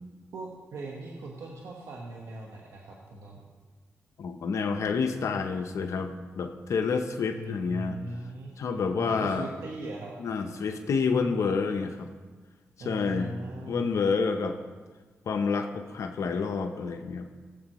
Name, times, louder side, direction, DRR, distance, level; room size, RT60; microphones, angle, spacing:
voice 1, 0.3-3.5 7.3-8.5 9.0-10.2 12.8-13.9, right 2 dB, 85° right, -2 dB, 1.3 m, -39 dB
voice 2, 4.2-8.0 8.6-9.5 10.2-12.1 12.8-13.3 13.7-14.6 15.3-17.3, left 5 dB, 80° left, 6 dB, 0.7 m, -28 dB
17.5 x 7.6 x 3.0 m, 1.4 s
cardioid pair, 55°, 5 cm